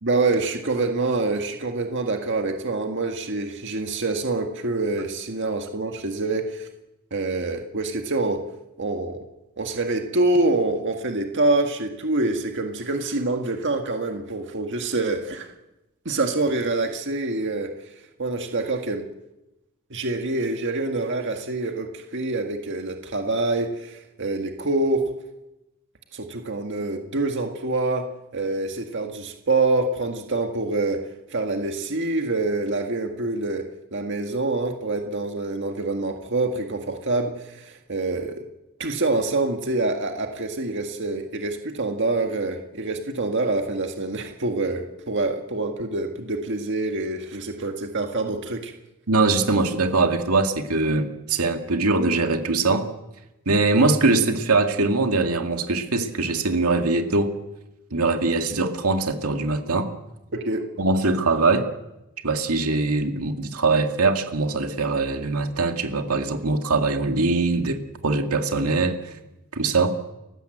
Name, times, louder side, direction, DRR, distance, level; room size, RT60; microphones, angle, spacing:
voice 1, 0.0-6.7 7.1-8.4 8.8-9.2 9.6-15.5 16.1-17.9 18.2-19.0 19.9-25.0 26.1-28.1 28.3-31.0 31.3-33.6 33.9-38.4 38.8-48.7 60.3-60.6, right 2 dB, 55° right, 4 dB, 1.8 m, -26 dB
voice 2, 49.1-52.9 53.5-57.3 57.9-59.9 60.8-61.7 62.2-69.1 69.5-69.9, right 3 dB, 85° right, 5 dB, 2.2 m, -22 dB
30.0 x 15.5 x 7.9 m, 0.97 s
head